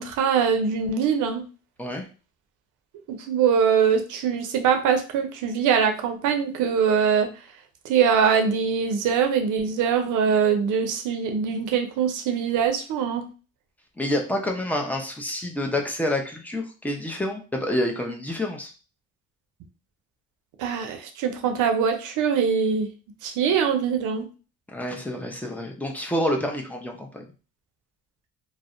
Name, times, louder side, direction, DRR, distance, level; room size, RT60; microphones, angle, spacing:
voice 1, 0.0-1.4 3.1-7.3 7.8-13.2 20.6-22.9 23.2-24.3, right 7 dB, 85° right, 6 dB, 0.6 m, -23 dB
voice 2, 14.0-18.7 24.7-27.3, left 1 dB, 5° left, 1 dB, 0.6 m, -28 dB
2.6 x 2.0 x 2.4 m, 0.34 s
cardioid pair, 90°, 30 cm